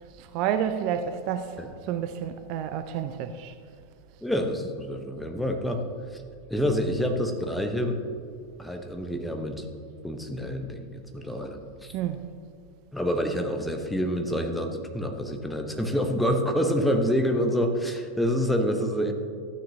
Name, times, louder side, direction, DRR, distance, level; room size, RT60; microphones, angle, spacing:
voice 1, 0.2-1.6 1.9-3.5 11.9-12.2, right 9 dB, 45° right, 0.4 m, -29 dB
voice 2, 4.2-5.8 6.5-8.0 8.6-9.6 10.0-11.9 12.9-19.1, equal, 5° left, 0.9 m, -27 dB
13.0 x 9.0 x 2.7 m
figure-of-eight pair, 90°, 0 cm